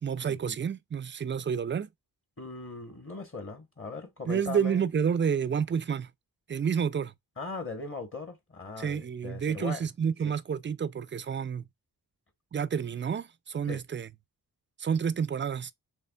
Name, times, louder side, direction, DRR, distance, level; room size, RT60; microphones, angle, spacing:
voice 1, 0.0-1.9 4.3-6.1 6.5-7.1 8.8-11.6 12.5-14.1 14.8-15.7, right 7 dB, 30° right, 0.4 m, -29 dB
voice 2, 2.4-4.8 7.4-9.8 10.2-10.3 13.7-13.8, left 3 dB, 35° left, 1.1 m, -39 dB
6.7 x 3.2 x 2.2 m
wide cardioid pair, 110°, 39 cm